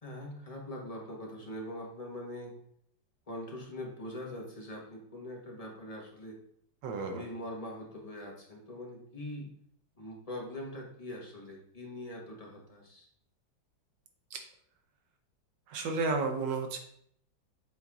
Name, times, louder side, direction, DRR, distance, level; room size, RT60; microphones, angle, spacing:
voice 1, 0.0-2.5 3.3-6.4 7.1-9.5 10.0-13.1, left 1 dB, 20° left, -1 dB, 1.2 m, -42 dB
voice 2, 6.8-7.3 14.3-14.4 15.7-16.8, right 3 dB, 75° right, 4 dB, 1.5 m, -32 dB
7.7 x 4.4 x 3.6 m, 0.68 s
omnidirectional pair, 2.0 m